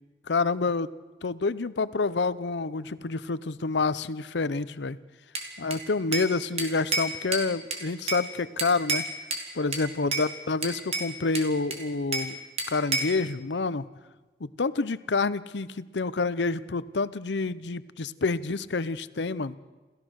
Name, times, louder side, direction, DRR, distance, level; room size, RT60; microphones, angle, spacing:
voice 1, 0.3-0.9 1.2-5.0 5.6-9.1 9.5-12.4 12.7-13.8 14.4-19.6, left 3 dB, 85° left, 16 dB, 0.7 m, -28 dB
Bell / Glass, 5.3-6.3 6.6-8.3 8.6-9.5 9.7-10.3 10.6-12.3 12.6-13.2, right 3 dB, 35° right, 2.6 m, -30 dB
28.0 x 15.0 x 6.4 m, 1.2 s
head